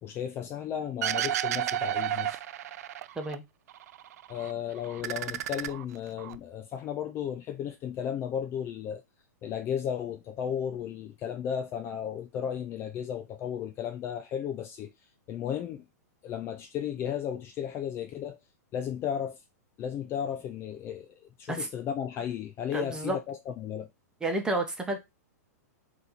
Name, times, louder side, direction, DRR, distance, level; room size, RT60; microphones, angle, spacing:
voice 1, 0.0-2.4 4.3-9.0 9.4-14.9 15.3-15.8 16.2-18.4 18.7-19.4 19.8-23.9, left 9 dB, 25° left, 0.5 m, -34 dB
sound 1, 1.0-3.4 3.7-4.5 4.8-6.4, right 12 dB, 70° right, 0.4 m, -32 dB
voice 2, 22.7-23.2 24.2-25.0, right 2 dB, 10° right, 1.0 m, -30 dB
4.2 x 3.0 x 4.0 m
hypercardioid pair, 135°, 9 cm